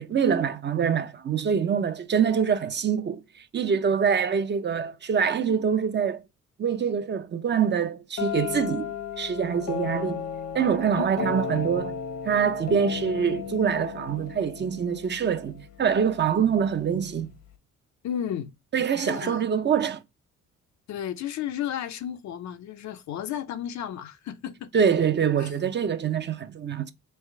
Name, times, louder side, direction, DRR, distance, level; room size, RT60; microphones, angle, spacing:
voice 1, 0.0-6.2 6.6-10.3 10.5-12.0 12.2-17.3 18.7-20.0 24.7-26.9, right 7 dB, 35° right, 0.5 m, -25 dB
sound 1, 8.2-15.9, left 7 dB, 85° left, 1.2 m, -34 dB
voice 2, 11.0-11.3 18.0-18.5 19.0-19.4 20.9-24.7 25.4-25.5, left 9 dB, 65° left, 0.6 m, -33 dB
3.4 x 3.2 x 4.5 m
cardioid pair, 90°, 30 cm